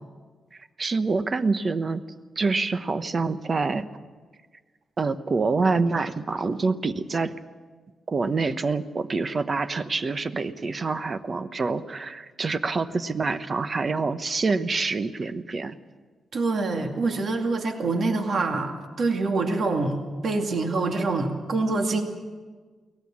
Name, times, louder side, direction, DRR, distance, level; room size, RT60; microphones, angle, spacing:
voice 1, 0.8-2.0 2.4-3.9 5.0-7.4 8.1-15.8, right 4 dB, 35° right, 11 dB, 1.0 m, -26 dB
voice 2, 16.3-20.0 20.2-22.0, right 3 dB, 50° right, 3 dB, 2.3 m, -25 dB
23.0 x 18.5 x 7.4 m, 1.4 s
wide cardioid pair, 130°, 0 cm